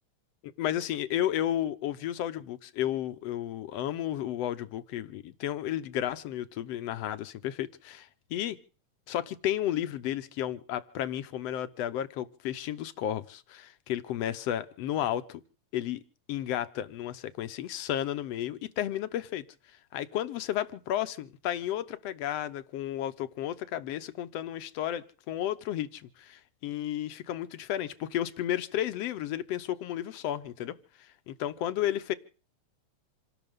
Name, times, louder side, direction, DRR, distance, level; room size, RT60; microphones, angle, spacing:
voice 1, 0.6-8.6 9.1-15.4 15.7-16.0 16.3-19.5 19.9-32.1, left 11 dB, 65° left, 1.8 m, -33 dB
27.5 x 12.0 x 3.7 m
omnidirectional pair, 3.4 m